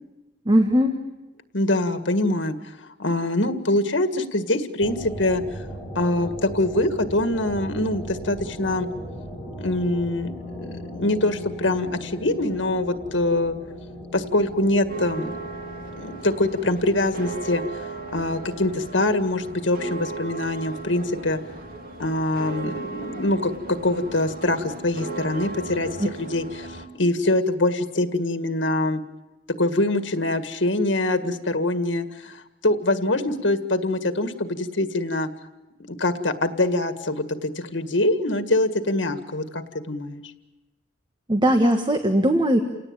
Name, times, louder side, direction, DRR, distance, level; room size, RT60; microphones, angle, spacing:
voice 1, 0.4-1.0 41.3-42.6, equal, 25° right, 6 dB, 1.5 m, -19 dB
voice 2, 1.5-5.4 6.0-8.9 9.6-13.6 14.1-15.3 15.9-21.4 22.0-29.0 29.6-35.3 35.9-40.2, left 2 dB, 90° left, 8 dB, 1.9 m, -24 dB
sound 1, 4.8-22.2, equal, 5° right, 6.2 m, -39 dB
sound 2, 14.9-26.9, right 4 dB, 50° right, 2.9 m, -36 dB
29.0 x 18.5 x 8.9 m, 1.0 s
head